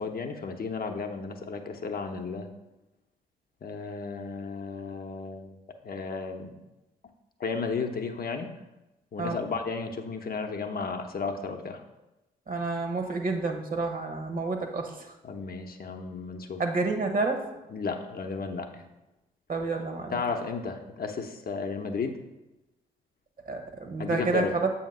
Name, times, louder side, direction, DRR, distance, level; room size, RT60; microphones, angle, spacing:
voice 1, 0.0-2.5 3.6-6.6 7.4-8.5 9.1-11.8 15.2-16.6 17.7-18.8 20.1-22.2 24.0-24.5, left 4 dB, 45° left, 4 dB, 0.7 m, -33 dB
voice 2, 12.5-15.1 16.6-17.4 19.5-20.2 23.5-24.7, right 3 dB, 40° right, 5 dB, 1.0 m, -29 dB
7.1 x 2.8 x 5.4 m, 1.0 s
hypercardioid pair, 40°, 21 cm